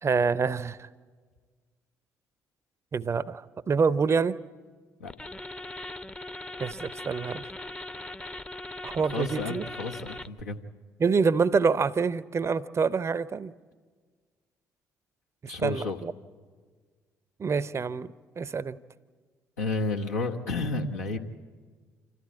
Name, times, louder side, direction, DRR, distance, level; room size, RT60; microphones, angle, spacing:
voice 1, 0.0-0.9 2.9-4.4 6.6-7.5 8.8-9.6 11.0-13.5 15.4-16.1 17.4-18.8, right 5 dB, 35° right, 19 dB, 0.6 m, -26 dB
sound 1, 5.1-10.4, left 2 dB, 15° left, 0.7 m, -40 dB
voice 2, 9.1-10.6 15.4-16.0 19.6-21.2, left 3 dB, 80° left, 0 dB, 1.2 m, -31 dB
27.0 x 13.5 x 8.5 m, 1.5 s
figure-of-eight pair, 45°, 8 cm